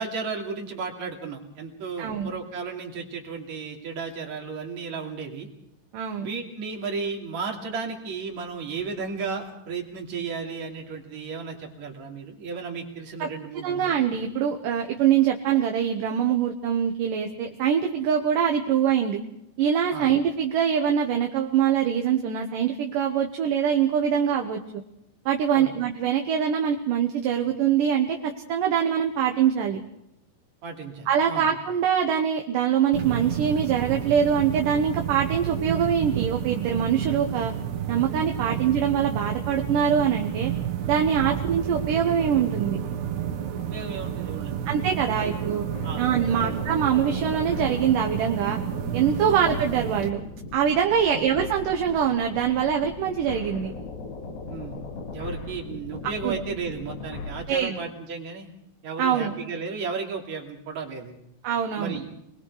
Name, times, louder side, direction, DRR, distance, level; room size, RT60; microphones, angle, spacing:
voice 1, 0.0-5.5 6.2-13.9 19.9-20.1 25.5-25.7 30.6-31.5 38.4-38.6 41.2-41.4 43.6-44.6 45.2-45.4 45.8-46.1 46.4-46.6 49.2-49.4 51.1-51.2 54.5-54.8 55.1-58.5 58.8-61.2 61.8-62.1, right 5 dB, 50° right, 1 dB, 3.8 m, -34 dB
voice 2, 2.0-2.3 5.9-6.3 13.2-13.3 13.6-19.2 19.6-24.6 25.3-29.8 31.1-37.5 37.9-40.5 40.9-42.8 44.7-45.7 46.0-48.6 48.9-50.2 50.5-53.7 56.2-56.4 57.5-57.8 59.0-59.4 61.4-62.0, right 8 dB, 65° right, 2 dB, 2.6 m, -24 dB
sound 1, 32.9-50.1, right 9 dB, 85° right, 3.7 m, -31 dB
sound 2, 45.7-57.4, left 3 dB, 65° left, 4.4 m, -38 dB
28.0 x 21.0 x 4.8 m, 0.80 s
omnidirectional pair, 4.6 m